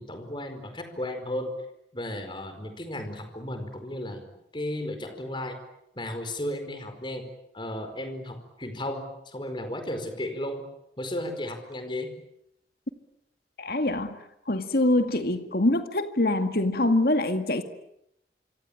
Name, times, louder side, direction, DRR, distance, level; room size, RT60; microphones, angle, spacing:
voice 1, 0.0-1.5 1.9-5.6 5.9-7.3 7.5-10.7 11.0-12.1, left 1 dB, 25° left, 7 dB, 4.7 m, -34 dB
voice 2, 13.6-14.1 14.5-17.6, left 1 dB, 55° left, 8 dB, 2.1 m, -24 dB
26.5 x 26.0 x 8.8 m, 0.79 s
head